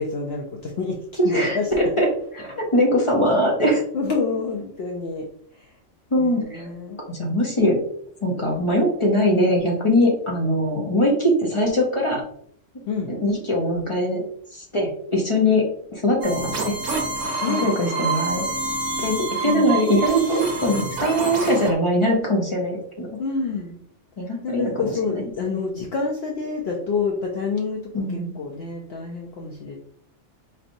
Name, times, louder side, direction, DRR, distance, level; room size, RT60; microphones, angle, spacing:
voice 1, 0.0-1.7 3.9-5.3 5.5-5.7 6.2-7.0 12.9-13.1 17.4-18.2 19.4-19.8 23.2-23.8 24.4-29.8, left 4 dB, 65° left, 0 dB, 0.8 m, -28 dB
voice 2, 1.2-2.1 2.3-3.8 6.1-6.7 7.1-7.8 8.2-12.2 13.1-14.2 14.5-16.8 17.5-18.4 19.0-23.2 24.2-24.9 25.5-25.6 27.9-28.3, equal, 30° left, -2 dB, 0.7 m, -21 dB
sound 1, 16.2-21.7, right 3 dB, 80° right, 1.3 m, -27 dB
4.1 x 3.3 x 2.6 m, 0.64 s
omnidirectional pair, 1.3 m